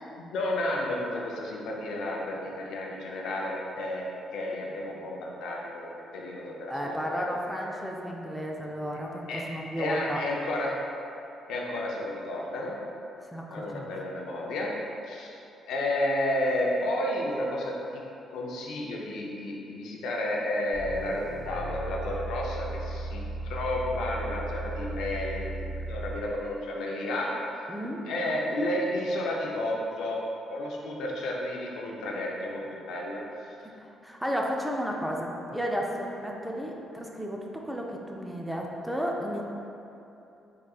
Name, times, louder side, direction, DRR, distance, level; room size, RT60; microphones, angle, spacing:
voice 1, 0.2-4.1 4.3-5.9 6.1-7.7 9.3-10.8 11.5-12.8 13.5-14.7 15.1-15.4 15.7-18.0 18.3-25.5 25.8-27.3 28.1-30.2 30.5-33.2, left 1 dB, 80° left, -2 dB, 0.5 m, -31 dB
voice 2, 6.7-10.2 13.3-13.9 27.7-28.0 33.8-39.4, equal, 5° right, -1 dB, 0.4 m, -33 dB
sound 1, 20.7-26.3, right 2 dB, 45° right, 0.9 m, -36 dB
3.8 x 3.5 x 2.4 m, 2.8 s
cardioid pair, 90°, 0 cm